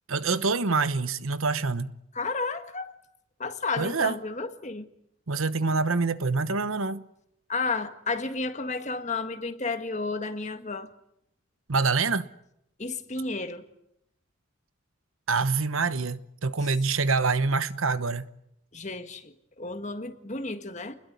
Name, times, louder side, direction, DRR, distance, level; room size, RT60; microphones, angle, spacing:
voice 1, 0.1-1.9 3.8-4.2 5.3-7.1 11.7-12.3 15.3-18.3, right 4 dB, 80° right, 1.1 m, -26 dB
voice 2, 2.1-2.9 3.4-4.8 7.5-10.9 12.8-13.7 18.7-21.0, left 3 dB, 35° left, 1.7 m, -32 dB
29.0 x 21.0 x 9.4 m
head